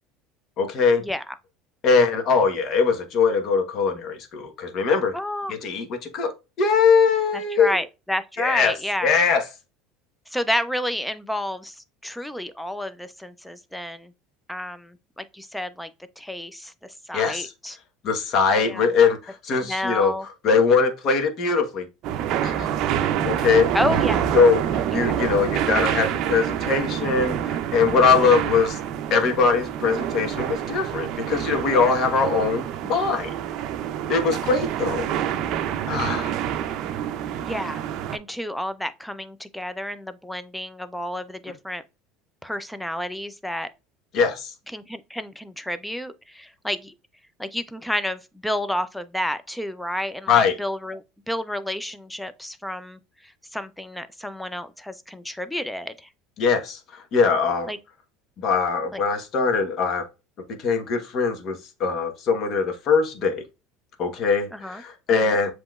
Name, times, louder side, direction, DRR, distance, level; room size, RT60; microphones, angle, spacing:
voice 1, 0.6-1.0 1.8-5.1 5.5-6.3 6.6-7.8 8.4-8.7 9.0-9.4 17.1-17.5 18.0-20.1 20.4-21.9 22.4-22.7 23.2-23.7 24.3-28.8 29.1-33.3 34.1-35.1 35.9-36.4 44.1-44.5 50.3-50.6 56.4-57.7 58.4-60.1 60.6-63.4 64.0-65.5, left 5 dB, 45° left, 1.1 m, -21 dB
voice 2, 5.1-5.6 7.3-9.1 10.3-11.8 12.0-14.1 14.5-15.9 16.2-17.8 18.5-18.9 19.6-20.2 23.7-24.3 24.9-25.1 37.4-37.8 38.1-41.8 42.4-43.7 44.7-46.9 47.4-53.0 53.5-56.1 57.7-57.8 58.9-59.0 64.6-64.8, left 1 dB, 5° left, 0.5 m, -30 dB
sound 1, 22.0-38.2, right 10 dB, 55° right, 0.5 m, -27 dB
7.4 x 3.0 x 2.4 m
supercardioid pair, 125°, 0 cm